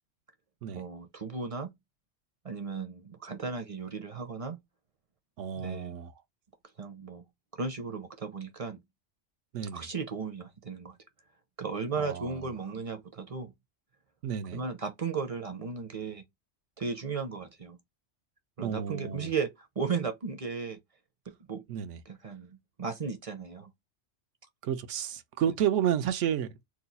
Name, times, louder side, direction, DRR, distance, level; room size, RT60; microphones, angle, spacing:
voice 1, 0.7-1.7 2.4-4.6 5.6-6.0 6.8-7.2 7.6-8.8 9.7-11.0 11.6-13.5 14.5-16.2 16.8-17.8 18.6-20.8 21.3-21.6 22.1-23.7, right 5 dB, 40° right, 0.5 m, -35 dB
voice 2, 5.4-6.1 9.5-9.9 12.0-12.5 14.2-14.6 18.6-19.3 21.7-22.0 24.6-26.5, right 9 dB, 85° right, 1.0 m, -31 dB
2.8 x 2.3 x 4.0 m
omnidirectional pair, 1.2 m